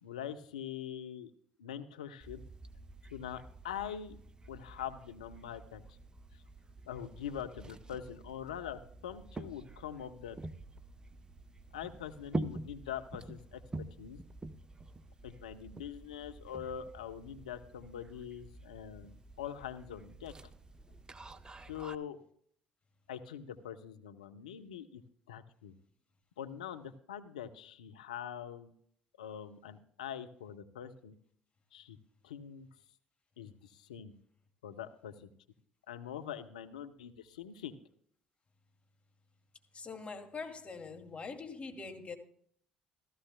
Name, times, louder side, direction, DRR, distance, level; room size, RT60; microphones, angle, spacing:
voice 1, 0.0-1.3 1.6-2.4 3.1-4.2 4.5-6.0 6.3-6.4 6.9-10.4 11.7-14.2 15.2-20.3 21.7-22.2 23.1-25.0 25.3-25.7 26.4-28.7 29.2-31.2 31.7-32.0 32.2-32.7 33.4-34.1 34.6-35.3 35.9-37.8, left 9 dB, 85° left, 0.8 m, -43 dB
sound 1, 2.2-22.0, right 2 dB, 20° right, 0.8 m, -47 dB
voice 2, 39.7-42.2, left 4 dB, 30° left, 2.4 m, -43 dB
16.0 x 14.5 x 2.2 m
hypercardioid pair, 55°, 4 cm